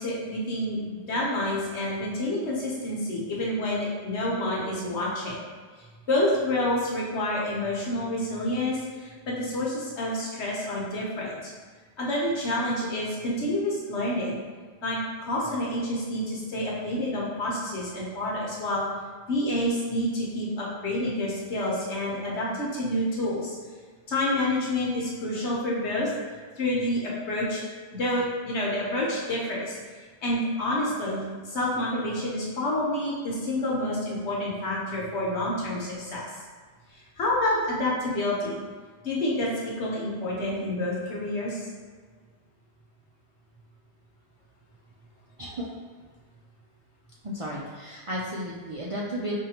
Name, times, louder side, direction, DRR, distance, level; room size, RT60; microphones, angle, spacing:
voice 1, 0.0-5.4 6.1-11.5 12.0-14.4 14.8-18.8 19.3-23.5 24.1-26.1 26.6-27.6 27.9-29.8 30.2-36.3 36.9-38.6 39.0-41.7, left 1 dB, 80° left, -4 dB, 1.3 m, -28 dB
voice 2, 4.7-5.1 45.4-45.7 47.2-49.3, equal, 55° right, -5 dB, 0.3 m, -34 dB
5.1 x 2.7 x 2.8 m, 1.5 s
omnidirectional pair, 1.1 m